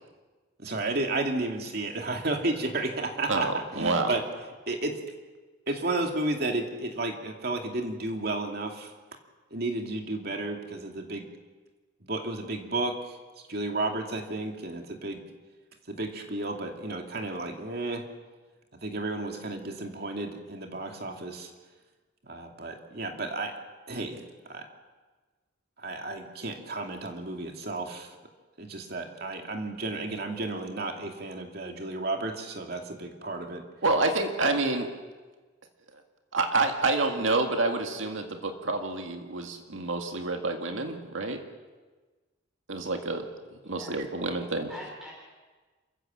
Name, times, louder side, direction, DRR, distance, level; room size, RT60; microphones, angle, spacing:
voice 1, 0.6-4.2 4.7-5.0 5.7-8.9 9.5-11.3 12.1-13.2 13.5-15.2 15.9-18.0 18.7-21.5 22.2-23.5 23.9-24.7 25.8-28.2 28.6-33.6, right 2 dB, 55° right, 3 dB, 2.5 m, -32 dB
voice 2, 3.3-4.1 33.8-34.9 36.3-41.4 42.7-43.3 43.7-44.7, right 3 dB, 85° right, 4 dB, 2.0 m, -28 dB
voice 3, 44.4-45.1, left 1 dB, ahead, -3 dB, 4.0 m, -44 dB
27.5 x 15.0 x 7.5 m, 1.3 s
head